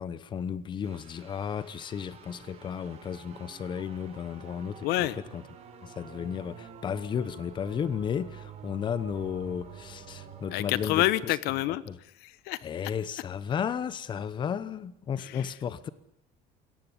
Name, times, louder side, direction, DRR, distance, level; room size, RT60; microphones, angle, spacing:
voice 1, 0.0-5.1 5.3-5.4 5.8-11.3 11.9-12.0 12.6-15.9, left 7 dB, 30° left, 1.0 m, -34 dB
sound 1, 0.8-11.0, right 7 dB, 40° right, 4.4 m, -48 dB
voice 2, 4.8-5.2 10.5-12.7 15.2-15.5, left 16 dB, 90° left, 1.2 m, -29 dB
22.0 x 17.5 x 9.7 m
cardioid pair, 170°, 16 cm